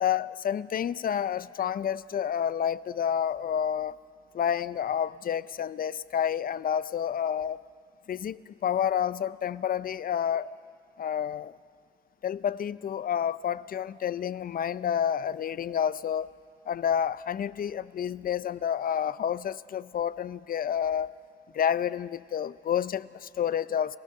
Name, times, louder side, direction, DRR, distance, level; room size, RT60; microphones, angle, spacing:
voice 1, 0.0-4.0 4.3-7.6 8.1-10.5 11.0-11.6 12.2-16.3 16.7-21.1 21.5-24.0, left 9 dB, 45° left, 0.5 m, -29 dB
29.5 x 15.5 x 6.6 m
cardioid pair, 90°, 20 cm